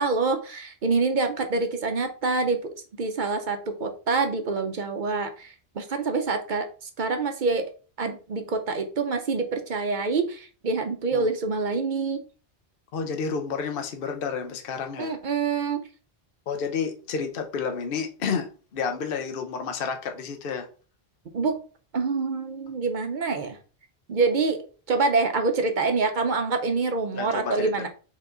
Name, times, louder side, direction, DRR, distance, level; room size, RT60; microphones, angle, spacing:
voice 1, 0.0-2.7 3.0-7.6 8.0-12.2 15.0-15.8 21.3-21.5 21.9-23.6 24.1-24.6 24.9-27.9, right 4 dB, 55° right, 0.7 m, -26 dB
voice 2, 12.9-15.2 16.5-20.7 27.1-27.9, left 6 dB, 60° left, 0.9 m, -30 dB
4.6 x 3.0 x 3.8 m
omnidirectional pair, 1.1 m